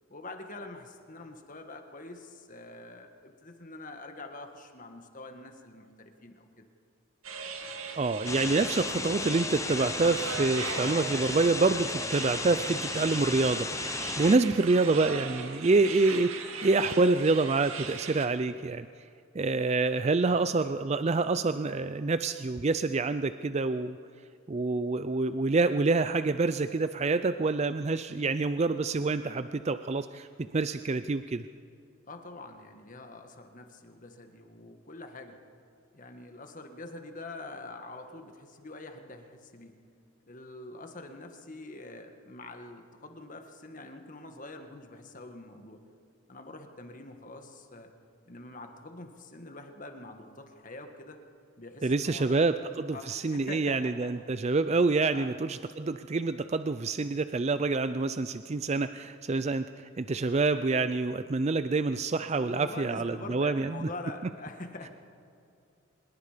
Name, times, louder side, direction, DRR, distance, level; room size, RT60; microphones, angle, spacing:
voice 1, 0.1-6.7 32.1-35.4 35.9-39.7 40.2-45.8 46.3-47.9 48.3-51.2 51.6-52.3 52.9-54.4 55.1-55.3 62.3-64.9, left 2 dB, 40° left, 5 dB, 1.7 m, -45 dB
sound 1, 7.2-18.3, right 5 dB, 75° right, 2.0 m, -39 dB
voice 2, 8.0-18.9 19.3-24.0 24.5-30.3 30.5-31.4 51.8-63.9, right 3 dB, 30° right, 11 dB, 0.4 m, -27 dB
sound 2, 8.3-14.4, left 4 dB, 15° left, 0.6 m, -35 dB
25.5 x 20.5 x 5.1 m, 2.6 s
head